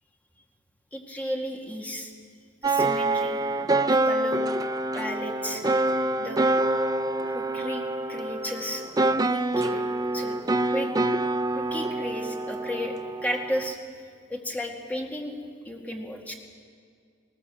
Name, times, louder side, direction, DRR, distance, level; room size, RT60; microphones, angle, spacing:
voice 1, 0.9-2.1 2.6-3.4 3.9-4.4 4.9-5.6 6.2-6.5 7.3-7.8 8.1-8.8 9.2-9.9 10.1-10.4 10.7-10.9 11.5-12.9 13.2-13.8 14.3-15.4 15.7-16.3, equal, 10° left, 1 dB, 1.9 m, -33 dB
sound 1, 2.6-13.7, right 2 dB, 20° right, 0.4 m, -26 dB
19.5 x 17.5 x 7.6 m, 2.1 s
head